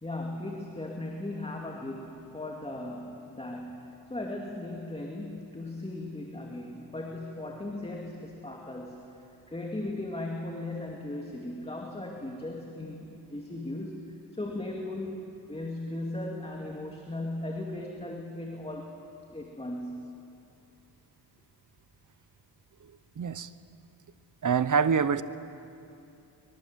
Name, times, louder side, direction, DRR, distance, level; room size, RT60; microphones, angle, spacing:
voice 1, 0.0-9.1 9.5-15.2 15.5-19.0 19.3-20.1, left 1 dB, 15° left, 0 dB, 2.4 m, -37 dB
voice 2, 23.2-23.5 24.4-25.2, right 6 dB, 45° right, 14 dB, 0.9 m, -25 dB
24.5 x 22.0 x 7.6 m, 2.8 s
cardioid pair, 90°, 42 cm